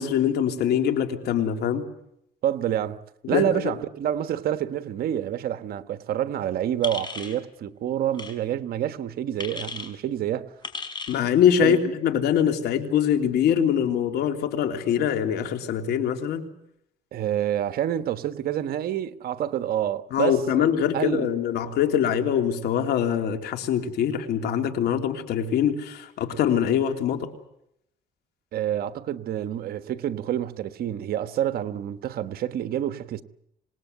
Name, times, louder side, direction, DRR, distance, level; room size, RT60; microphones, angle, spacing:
voice 1, 0.0-1.9 3.2-3.7 11.1-16.5 20.1-27.3, left 9 dB, 70° left, 3.2 m, -23 dB
voice 2, 2.4-3.0 3.3-10.5 11.6-11.8 17.1-20.7 20.9-21.3 28.5-33.2, right 11 dB, 65° right, 1.3 m, -28 dB
sound 1, 6.8-7.4 8.1-8.3 9.4-9.9 10.6-11.2, left 4 dB, 25° left, 5.5 m, -35 dB
26.5 x 19.5 x 8.1 m
cardioid pair, 110°, 17 cm